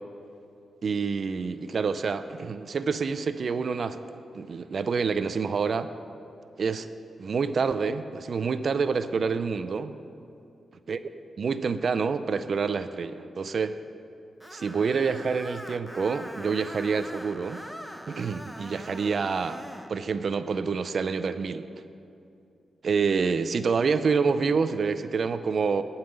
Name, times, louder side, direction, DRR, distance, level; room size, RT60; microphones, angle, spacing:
voice 1, 0.8-4.0 4.3-5.9 6.6-6.9 7.2-10.0 10.9-11.0 11.4-13.8 14.5-17.6 18.1-19.6 19.9-21.7 22.8-25.8, right 5 dB, 55° right, 12 dB, 0.4 m, -27 dB
Screech, 14.4-19.9, equal, ahead, 0.7 m, -42 dB
11.5 x 5.6 x 8.9 m, 2.6 s
cardioid pair, 85°, 0 cm